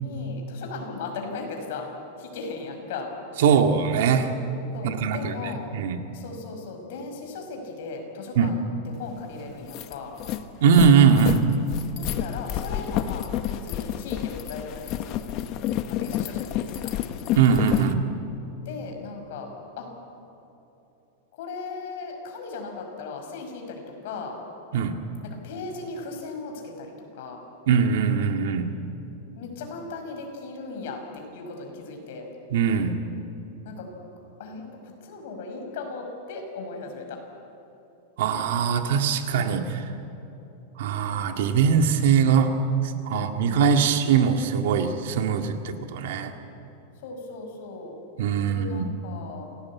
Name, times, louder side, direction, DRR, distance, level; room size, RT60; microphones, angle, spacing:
voice 1, 0.0-3.1 4.7-5.6 6.1-10.1 12.0-15.2 15.9-16.9 18.7-19.5 19.8-19.9 21.3-24.4 25.2-27.4 29.4-32.3 33.6-33.9 34.4-37.2 43.1-44.0 47.0-47.9 48.5-49.5, left 4 dB, 55° left, 3 dB, 5.6 m, -37 dB
voice 2, 3.4-4.3 4.8-5.3 5.7-6.0 8.4-8.5 10.6-11.4 17.4-18.0 24.7-25.0 27.7-28.7 32.5-33.0 38.2-39.8 40.8-42.6 42.8-46.3 48.2-48.9, right 6 dB, 65° right, 5 dB, 2.0 m, -21 dB
sound 1, 9.1-9.2 9.5-17.9, left 11 dB, 35° left, 1.0 m, -29 dB
27.5 x 18.5 x 8.6 m, 3.0 s
supercardioid pair, 170°, 0 cm